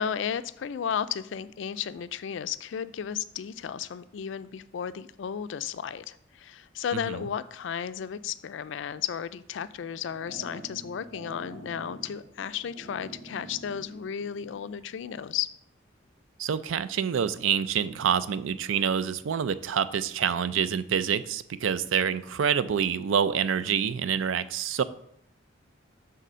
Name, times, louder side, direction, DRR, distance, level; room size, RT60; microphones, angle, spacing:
voice 1, 0.0-15.5, left 8 dB, 65° left, 14 dB, 0.3 m, -34 dB
voice 2, 6.9-7.3 16.4-24.8, right 7 dB, 80° right, 15 dB, 0.4 m, -27 dB
sound 1, 9.7-14.7, right 2 dB, 50° right, 3.0 m, -47 dB
6.7 x 3.9 x 6.2 m, 0.71 s
head